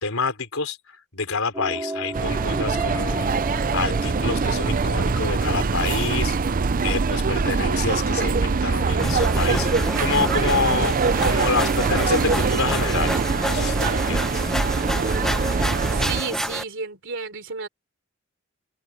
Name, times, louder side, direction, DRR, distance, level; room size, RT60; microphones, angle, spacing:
voice 1, 0.0-0.8 1.1-6.4 6.8-13.1 13.5-14.4, left 4 dB, 80° left, 4.1 m, -27 dB
sound 1, 1.5-7.0, right 1 dB, 15° right, 4.2 m, -35 dB
sound 2, 2.1-16.2, right 4 dB, 40° right, 0.5 m, -23 dB
Flying saucer, 9.0-16.6, equal, ahead, 1.0 m, -29 dB
voice 2, 15.9-17.7, right 5 dB, 65° right, 3.6 m, -31 dB
open air
head